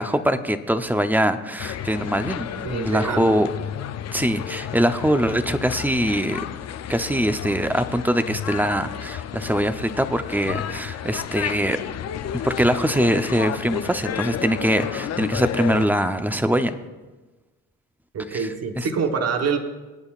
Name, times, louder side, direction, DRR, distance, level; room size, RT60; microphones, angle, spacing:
voice 1, 0.0-3.5 4.1-6.4 6.9-11.8 12.4-16.8 18.3-18.5 18.8-18.9, equal, 5° right, 9 dB, 0.7 m, -23 dB
sound 1, 1.6-15.9, left 10 dB, 55° left, 0.6 m, -32 dB
voice 2, 2.6-3.4 18.1-19.6, right 5 dB, 55° right, 6 dB, 1.2 m, -25 dB
25.0 x 8.7 x 2.5 m, 1.2 s
cardioid pair, 90°, 30 cm